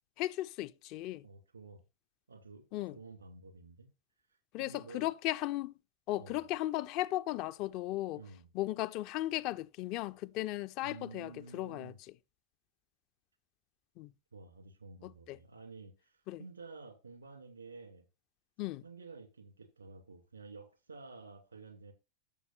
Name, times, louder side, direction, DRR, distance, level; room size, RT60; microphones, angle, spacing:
voice 1, 0.2-1.2 2.7-3.0 4.5-5.7 6.1-8.2 8.5-11.9 14.0-14.1 15.0-15.4 16.3-16.4 18.6-18.8, left 16 dB, 40° left, 0.4 m, -36 dB
voice 2, 1.2-1.8 2.3-3.9 4.6-5.1 6.2-6.5 8.1-8.5 10.8-12.0 14.3-18.0 18.8-21.9, right 4 dB, 80° right, 2.5 m, -51 dB
14.0 x 7.1 x 2.5 m
figure-of-eight pair, 90°, 0 cm